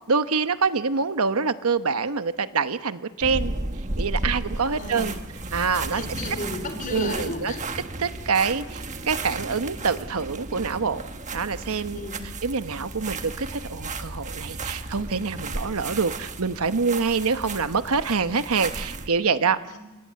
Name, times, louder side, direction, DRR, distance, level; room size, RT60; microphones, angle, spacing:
voice 1, 0.1-3.5 4.0-5.1 5.5-6.1 6.9-7.5 8.0-11.0 11.3-12.0 12.4-19.6, right 5 dB, 85° right, 11 dB, 1.0 m, -25 dB
sound 1, 3.2-19.1, right 2 dB, 35° right, 1.3 m, -34 dB
voice 2, 4.7-5.3 5.9-7.6 11.9-12.2 19.6-19.8, left 2 dB, 40° left, 6 dB, 4.3 m, -34 dB
28.0 x 24.0 x 7.6 m, 1.1 s
head